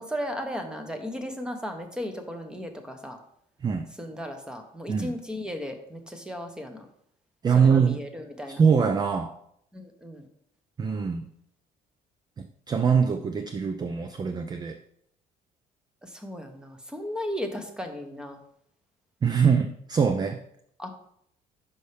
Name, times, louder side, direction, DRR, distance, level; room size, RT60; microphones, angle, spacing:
voice 1, 0.0-3.2 4.0-6.9 7.5-8.6 9.7-10.2 16.0-18.4 20.8-20.9, equal, 5° right, 6 dB, 0.8 m, -35 dB
voice 2, 7.4-8.0 8.5-9.4 10.8-11.3 12.4-14.8 19.2-20.4, right 6 dB, 25° right, 8 dB, 0.4 m, -23 dB
5.6 x 5.3 x 3.3 m, 0.72 s
cardioid pair, 110°, 17 cm